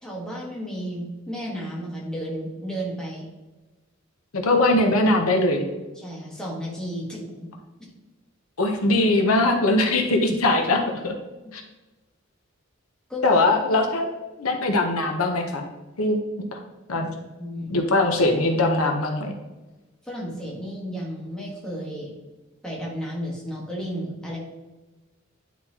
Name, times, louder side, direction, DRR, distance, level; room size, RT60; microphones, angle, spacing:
voice 1, 0.0-3.3 6.0-7.5 7.8-7.9 13.1-13.4 17.4-17.7 20.0-22.1 22.6-24.4, equal, 5° left, -4 dB, 1.4 m, -33 dB
voice 2, 4.3-5.7 8.6-11.1 11.5-11.6 13.2-14.1 14.4-15.6 16.0-16.2 16.5-16.6 16.9-17.1 17.7-19.3, left 2 dB, 90° left, 3 dB, 1.0 m, -21 dB
10.0 x 4.1 x 2.9 m, 1.1 s
head